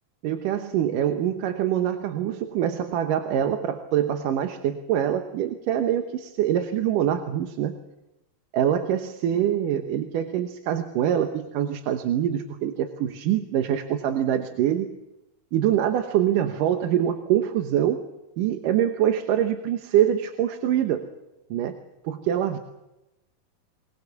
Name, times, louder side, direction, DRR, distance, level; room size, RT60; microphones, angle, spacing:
voice 1, 0.2-7.8 8.5-14.9 15.5-18.0 18.4-21.1 21.5-21.8 22.0-22.6, right 10 dB, 80° right, 6 dB, 2.7 m, -24 dB
23.5 x 21.0 x 7.0 m, 0.95 s
omnidirectional pair, 3.7 m